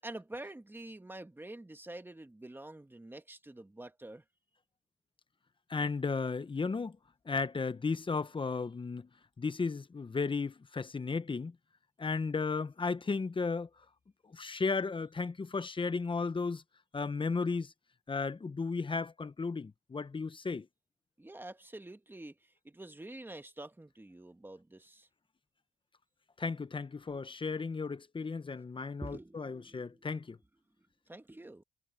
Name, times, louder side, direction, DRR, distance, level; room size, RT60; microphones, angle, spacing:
voice 1, 0.0-4.2 21.2-25.1 29.0-30.2 31.1-31.6, right 1 dB, 10° right, 1.9 m, -47 dB
voice 2, 5.7-7.0 7.3-9.1 9.4-11.5 12.0-13.7 14.3-16.6 16.9-17.7 18.1-20.7 26.4-30.4, left 4 dB, 25° left, 1.0 m, -34 dB
cardioid pair, 90°, 20 cm